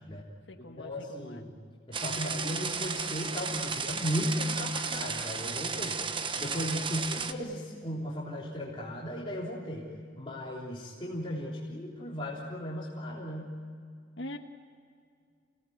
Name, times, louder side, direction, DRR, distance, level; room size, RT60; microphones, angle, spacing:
voice 1, 0.0-1.4 6.9-7.1 14.2-14.4, left 1 dB, 75° left, 2 dB, 1.5 m, -44 dB
voice 2, 0.6-1.5 1.9-6.0 6.4-9.9 10.2-13.6, equal, 25° left, -5 dB, 3.4 m, -36 dB
sound 1, 1.9-7.3, right 5 dB, 25° right, 1.0 m, -34 dB
28.0 x 18.5 x 9.4 m, 2.2 s
head